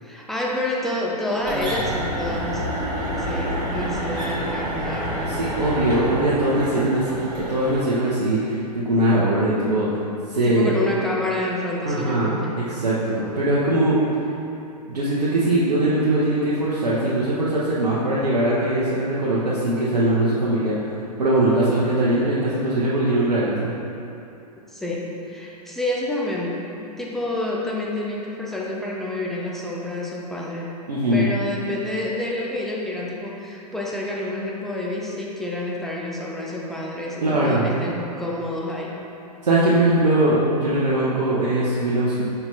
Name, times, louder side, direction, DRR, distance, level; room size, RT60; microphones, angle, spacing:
voice 1, 0.0-2.7 3.0-5.4 10.4-12.6 24.7-30.7 31.1-39.0, left 1 dB, ahead, -4 dB, 0.7 m, -28 dB
sound 1, 1.4-7.8, right 1 dB, 20° right, 1.3 m, -28 dB
voice 2, 5.3-7.0 7.5-9.9 10.3-10.7 11.8-12.3 12.6-14.0 14.9-20.7 21.2-23.7 30.9-31.2 37.2-37.7 39.4-42.2, right 1 dB, 75° right, -8 dB, 1.0 m, -21 dB
5.4 x 4.4 x 4.1 m, 2.7 s
figure-of-eight pair, 110°, 21 cm